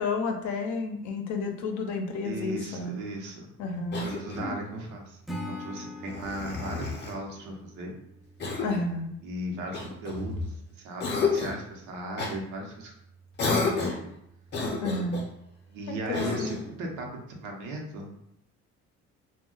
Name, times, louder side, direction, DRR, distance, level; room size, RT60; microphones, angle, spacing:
voice 1, 0.0-3.0 3.6-4.1 8.6-9.1 14.8-15.3 15.9-16.5, left 3 dB, 75° left, 4 dB, 0.6 m, -31 dB
voice 2, 2.2-3.5 4.0-5.2 5.5-7.9 9.2-12.9 13.4-14.1 15.7-18.1, right 1 dB, 90° right, 1 dB, 0.8 m, -37 dB
Cough, 3.9-4.7 6.0-7.2 8.4-8.9 9.7-10.5 11.0-11.6 12.2-12.4 13.4-14.1 14.5-15.3 16.1-16.7, left 4 dB, 35° left, 0.6 m, -31 dB
Acoustic guitar / Strum, 5.2-8.4, left 1 dB, ahead, 0.3 m, -41 dB
2.2 x 2.1 x 3.7 m, 0.79 s
cardioid pair, 115°, 29 cm